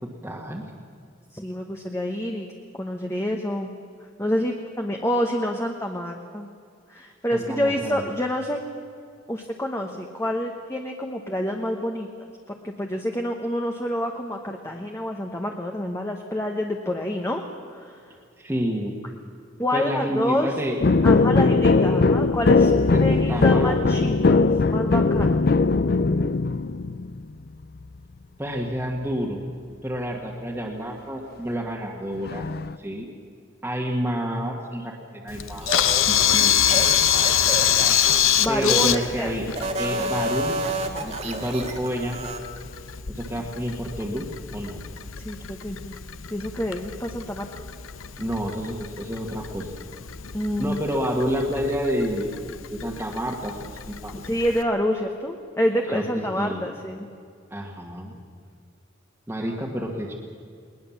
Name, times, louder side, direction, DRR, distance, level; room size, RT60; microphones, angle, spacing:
voice 1, 0.0-0.6 7.3-8.0 18.4-18.9 19.7-20.8 22.9-24.1 28.4-29.4 29.8-32.4 32.8-33.1 33.6-35.7 36.1-36.9 38.5-39.5 39.8-40.6 41.0-42.3 43.1-44.3 44.5-44.8 48.2-49.7 50.6-52.4 52.7-54.1 55.9-56.7 57.5-58.2 59.3-60.1, equal, 10° right, -3 dB, 1.6 m, -29 dB
voice 2, 1.3-2.5 2.8-3.7 4.2-6.5 6.9-8.6 9.3-12.1 12.6-17.4 17.7-18.1 19.6-20.5 21.0-25.4 38.4-39.3 45.2-46.0 46.3-47.4 50.3-50.8 54.2-57.1, left 1 dB, 15° left, 2 dB, 1.1 m, -27 dB
sound 1, 20.8-27.2 32.3-32.7, left 3 dB, 45° left, 0.5 m, -19 dB
Camera, 35.3-54.6, left 10 dB, 80° left, 0.9 m, -26 dB
sound 2, 35.6-39.1 39.5-42.4, right 2 dB, 30° right, 1.7 m, -30 dB
20.5 x 20.5 x 7.2 m, 2.3 s
head